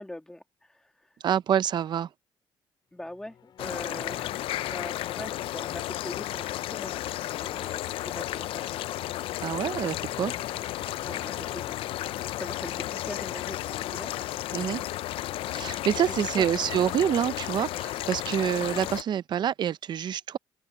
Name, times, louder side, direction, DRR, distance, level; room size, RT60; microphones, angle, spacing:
voice 1, 0.0-1.2 2.9-8.9 11.0-11.7 12.4-14.1 16.4-16.6, left 1 dB, 5° left, 1.6 m, -42 dB
voice 2, 1.2-2.1 9.4-10.3 14.5-14.8 15.5-20.4, right 9 dB, 55° right, 0.7 m, -27 dB
sound 1, 2.9-15.4, left 8 dB, 55° left, 4.5 m, -51 dB
sound 2, 3.6-19.0, left 14 dB, 80° left, 0.5 m, -33 dB
open air
cardioid pair, 120°, 9 cm